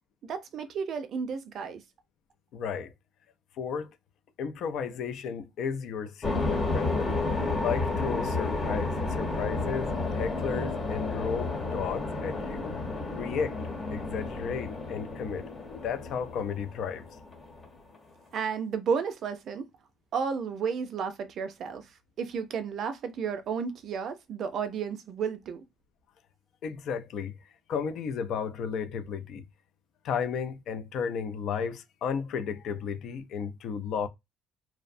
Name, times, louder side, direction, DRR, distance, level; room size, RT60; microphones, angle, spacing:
voice 1, 0.2-1.8 18.3-19.7 20.1-21.9 22.2-25.6, right 6 dB, 50° right, 0.4 m, -32 dB
voice 2, 2.5-2.9 3.6-3.9 4.4-7.1 7.5-12.7 13.1-13.6 13.9-15.4 15.8-17.1 26.6-27.3 27.7-29.4 30.0-34.1, left 6 dB, 60° left, 0.4 m, -33 dB
sound 1, 6.2-17.7, left 3 dB, 30° left, 1.0 m, -31 dB
2.6 x 2.0 x 2.5 m
cardioid pair, 125°, 0 cm